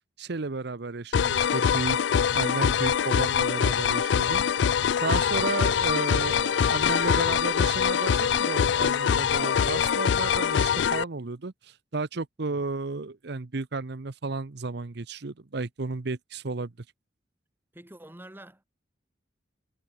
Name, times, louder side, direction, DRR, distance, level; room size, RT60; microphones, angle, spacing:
voice 1, 0.2-2.0 2.3-16.7, right 3 dB, 65° right, 0.8 m, -33 dB
sound 1, 1.1-11.0, left 8 dB, 70° left, 0.4 m, -24 dB
voice 2, 4.6-5.6 17.7-18.6, right 1 dB, 10° right, 1.3 m, -49 dB
head